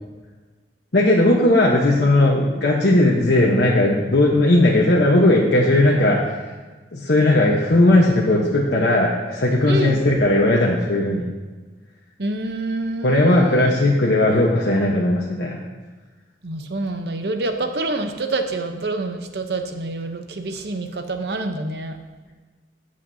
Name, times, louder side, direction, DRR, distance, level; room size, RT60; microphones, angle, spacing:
voice 1, 0.9-6.2 6.9-11.3 13.0-15.6, left 1 dB, 70° left, -4 dB, 1.1 m, -17 dB
voice 2, 9.7-10.0 12.2-13.7 16.4-21.9, right 2 dB, 65° right, 7 dB, 0.8 m, -27 dB
13.5 x 8.3 x 2.8 m, 1.3 s
head